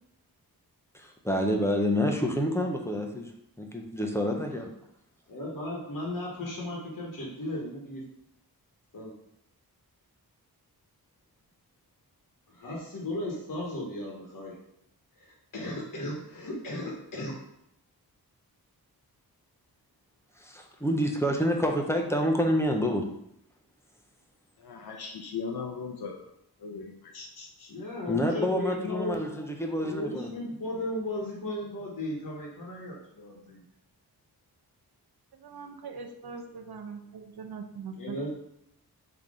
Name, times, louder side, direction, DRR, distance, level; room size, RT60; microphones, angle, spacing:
voice 1, 0.9-3.3 3.6-4.7 20.4-23.1 28.1-30.3, equal, 5° left, 2 dB, 0.5 m, -28 dB
voice 2, 5.3-8.0 8.9-9.1 12.5-14.5 15.2-17.4 27.7-29.2 29.8-33.6 37.9-38.3, left 1 dB, 60° left, -3 dB, 1.1 m, -35 dB
voice 3, 24.6-26.3 26.6-27.7, left 5 dB, 75° left, 2 dB, 0.6 m, -38 dB
voice 4, 35.3-38.2, right 5 dB, 75° right, 5 dB, 0.6 m, -41 dB
3.8 x 2.9 x 4.9 m, 0.77 s
wide cardioid pair, 130°, 38 cm